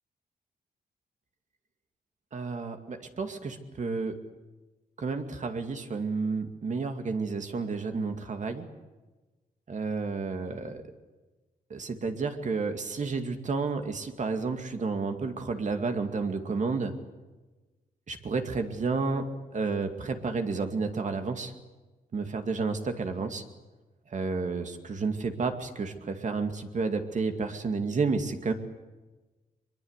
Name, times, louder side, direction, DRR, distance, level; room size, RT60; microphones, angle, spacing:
voice 1, 2.3-4.1 5.0-8.7 9.7-10.8 11.7-16.9 18.1-19.2 19.5-21.5 22.1-23.4 24.1-28.5, right 4 dB, 50° right, 6 dB, 2.3 m, -31 dB
23.5 x 22.5 x 8.2 m, 1.2 s
wide cardioid pair, 115°, 16 cm